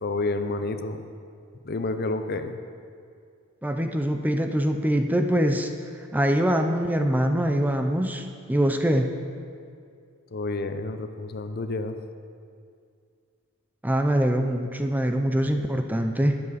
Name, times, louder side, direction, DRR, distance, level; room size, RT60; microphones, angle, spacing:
voice 1, 0.0-1.1 1.6-2.6 10.3-12.0, left 2 dB, 45° left, 8 dB, 0.6 m, -29 dB
voice 2, 3.6-9.1 13.8-16.4, equal, 10° right, 5 dB, 0.5 m, -24 dB
20.0 x 7.7 x 4.1 m, 2.3 s
head